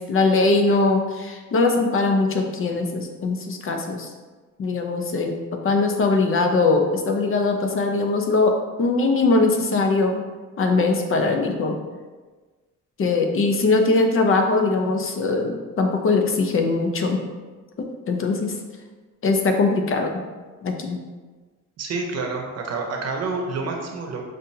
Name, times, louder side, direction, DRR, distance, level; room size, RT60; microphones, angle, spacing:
voice 1, 0.0-4.1 4.6-8.5 8.8-10.2 10.6-11.8 13.0-17.2 17.8-18.5 19.2-20.1 20.6-21.0, left 3 dB, 45° left, 3 dB, 0.7 m, -21 dB
voice 2, 21.8-24.2, right 3 dB, 55° right, 2 dB, 0.9 m, -28 dB
5.4 x 2.6 x 2.8 m, 1.3 s
cardioid pair, 90°, 30 cm